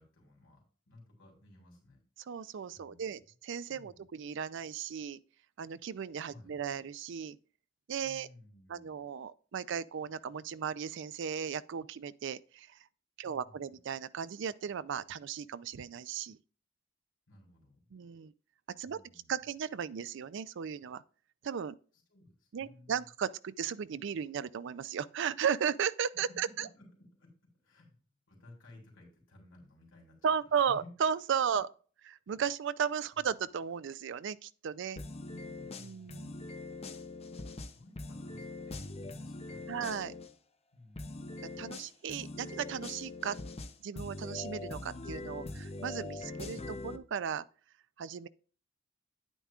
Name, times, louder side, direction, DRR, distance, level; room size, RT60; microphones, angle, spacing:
voice 1, 0.0-2.0 2.7-3.3 3.7-4.0 6.3-6.6 8.0-9.0 13.2-13.6 17.3-17.8 18.8-19.4 22.1-23.1 26.1-27.3 27.6-28.0 28.3-30.9 31.5-31.6 33.1-33.2 35.3-36.5 37.3-39.9 40.7-41.3, left 2 dB, 80° left, 3.3 m, -57 dB
voice 2, 2.3-5.2 5.6-7.4 7.9-8.3 8.7-12.8 13.2-16.4 17.9-18.3 18.8-19.0 19.3-21.0 21.4-21.8 22.5-26.7 30.2-31.7 32.0-35.0 35.8-36.4 39.7-40.1 41.6-43.4 43.8-47.4 48.0-48.3, right 7 dB, 65° right, 0.4 m, -35 dB
sound 1, 35.0-40.3 41.0-47.0, left 2 dB, 30° left, 0.6 m, -42 dB
9.6 x 9.0 x 2.4 m
head